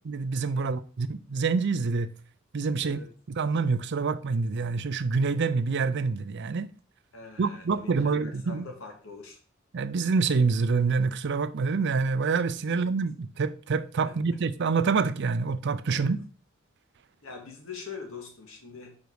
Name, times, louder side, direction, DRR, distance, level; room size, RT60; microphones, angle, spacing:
voice 1, 0.1-2.1 2.5-3.0 3.3-6.7 7.4-8.7 9.7-16.2, right 4 dB, 60° right, 0.5 m, -26 dB
voice 2, 2.8-3.1 7.1-9.4 12.7-12.9 14.0-14.1 15.9-16.2 17.2-19.0, left 4 dB, 90° left, 1.9 m, -43 dB
5.2 x 5.1 x 4.6 m
head